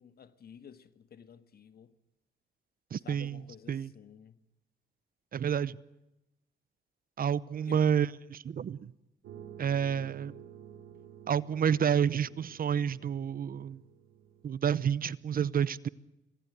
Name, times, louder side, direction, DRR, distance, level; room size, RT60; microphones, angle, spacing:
voice 1, 0.0-1.9 3.0-4.4 7.7-7.8, left 7 dB, 50° left, 1.6 m, -52 dB
voice 2, 2.9-3.9 5.3-5.8 7.2-8.9 9.6-10.3 11.3-13.8 14.4-15.9, right 8 dB, 45° right, 0.8 m, -29 dB
sound 1, 9.2-14.5, right 9 dB, 85° right, 3.1 m, -51 dB
25.0 x 18.0 x 8.0 m
cardioid pair, 90°, 20 cm